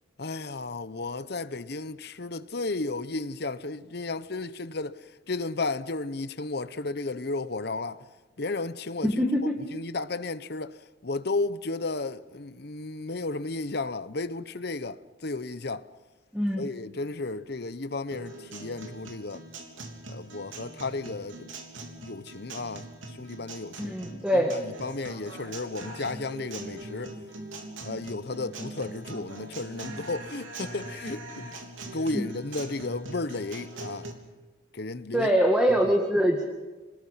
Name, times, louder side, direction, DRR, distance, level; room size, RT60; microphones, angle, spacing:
voice 1, 0.2-5.0 5.3-8.0 8.4-9.2 9.7-10.8 11.0-15.8 16.6-19.4 20.1-21.5 22.0-23.9 24.3-27.1 27.8-31.6 31.9-34.1 34.7-35.3, left 3 dB, 55° left, 0.9 m, -33 dB
voice 2, 9.0-9.6 16.3-16.7 23.8-24.6 32.1-32.3 35.1-36.5, equal, 5° right, 1.9 m, -24 dB
Guitar, 18.1-34.1, right 2 dB, 85° right, 3.4 m, -42 dB
28.0 x 20.0 x 5.8 m
head